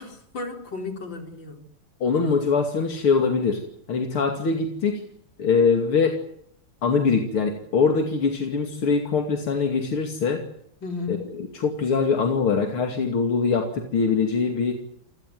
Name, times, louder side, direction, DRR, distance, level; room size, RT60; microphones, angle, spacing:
voice 1, 0.0-1.6 10.8-11.3, left 4 dB, 60° left, 5 dB, 4.9 m, -34 dB
voice 2, 2.0-3.6 3.9-5.0 5.4-6.2 6.8-10.4 11.1-14.7, left 5 dB, 80° left, 4 dB, 3.4 m, -23 dB
28.0 x 17.0 x 9.5 m, 0.67 s
omnidirectional pair, 2.3 m